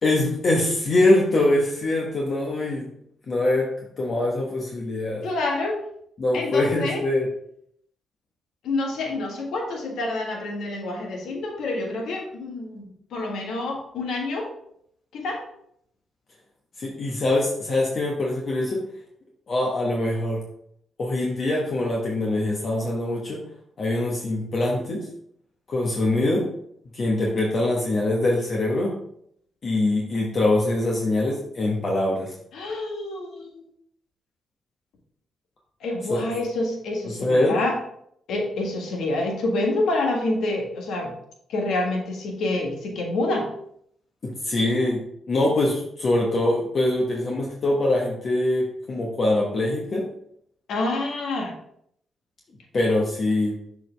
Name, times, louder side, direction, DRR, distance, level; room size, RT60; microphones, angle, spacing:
voice 1, 0.0-2.9 3.3-3.7 4.0-5.3 6.2-7.3 16.8-18.8 19.5-20.4 21.0-23.4 23.8-25.1 25.7-26.5 26.9-28.9 29.6-32.3 36.1-36.2 37.1-37.6 44.2-50.0 52.7-53.6, left 2 dB, 55° left, -2 dB, 1.2 m, -23 dB
voice 2, 5.2-5.8 6.3-7.0 8.6-12.8 13.1-14.5 15.1-15.4 32.5-33.7 35.8-37.8 38.3-41.1 41.5-43.5 50.7-51.5, left 2 dB, 80° left, 1 dB, 1.4 m, -27 dB
6.5 x 4.8 x 3.3 m, 0.69 s
supercardioid pair, 55°, 0 cm